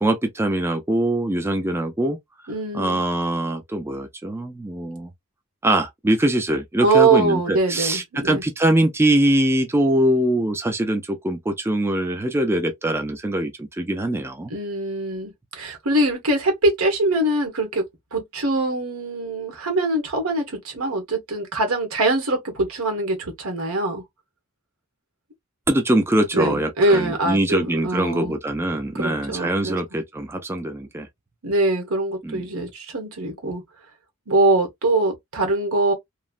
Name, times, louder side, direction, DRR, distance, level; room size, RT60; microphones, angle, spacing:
voice 1, 0.0-2.2 2.7-5.1 5.6-14.5 25.7-31.1 32.2-32.5, right 1 dB, 10° right, 0.4 m, -22 dB
voice 2, 2.5-3.0 6.8-8.4 14.5-24.0 26.3-28.3 28.9-29.8 31.4-33.6 34.3-35.9, right 2 dB, 85° right, 1.2 m, -23 dB
3.0 x 2.0 x 2.4 m
head